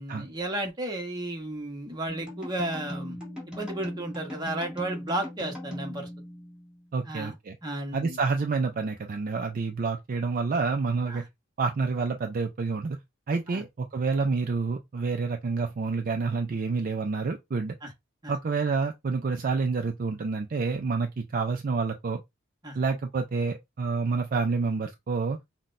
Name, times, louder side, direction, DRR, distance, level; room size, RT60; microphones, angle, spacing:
voice 1, 0.0-3.2 3.5-6.1 7.0-7.3 7.6-8.2 11.1-11.3 13.5-13.6 17.8-17.9 18.2-18.3 22.6-22.8, right 1 dB, 20° right, 0.9 m, -33 dB
sound 1, 2.1-6.9, equal, 5° right, 2.0 m, -39 dB
voice 2, 6.9-7.6 7.9-11.2 11.6-13.0 13.3-17.8 18.3-22.2 22.7-25.4, right 4 dB, 45° right, 0.4 m, -28 dB
5.7 x 2.2 x 2.5 m
head